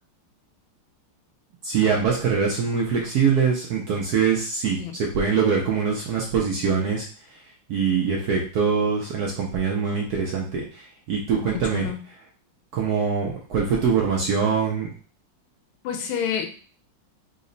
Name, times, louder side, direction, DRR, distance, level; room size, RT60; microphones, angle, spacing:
voice 1, 1.6-7.1 7.3-7.4 7.7-11.9 12.7-14.9, right 6 dB, 70° right, -2 dB, 0.9 m, -23 dB
voice 2, 11.4-12.0 15.8-16.5, left 8 dB, 85° left, 5 dB, 1.5 m, -29 dB
3.9 x 2.1 x 3.8 m, 0.40 s
omnidirectional pair, 2.2 m